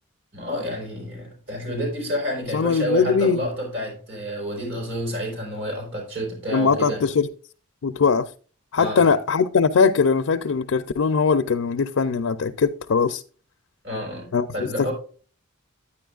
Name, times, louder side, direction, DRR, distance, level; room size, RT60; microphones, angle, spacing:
voice 1, 0.3-7.0 8.8-9.1 13.8-14.9, equal, 60° right, 4.5 m, -29 dB
voice 2, 2.5-3.4 6.5-7.3 7.8-8.3 8.7-13.2 14.3-14.5 14.8-14.9, left 5 dB, 65° left, 0.5 m, -20 dB
10.0 x 9.7 x 2.4 m
head